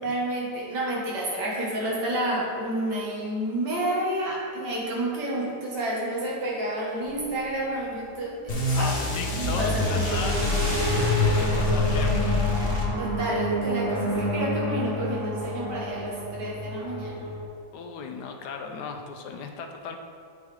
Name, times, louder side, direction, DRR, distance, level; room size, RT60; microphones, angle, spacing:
voice 1, 0.0-8.9 9.4-9.9 13.0-17.3, right 1 dB, 75° right, -4 dB, 2.0 m, -30 dB
sound 1, 7.0-7.2 9.2-17.5, equal, 45° right, 1.2 m, -29 dB
sound 2, 8.5-13.3, left 3 dB, 45° left, 1.2 m, -26 dB
voice 2, 8.7-12.4 17.7-20.0, left 5 dB, 75° left, 4 dB, 1.1 m, -36 dB
8.2 x 4.9 x 3.4 m, 2.3 s
omnidirectional pair, 1.9 m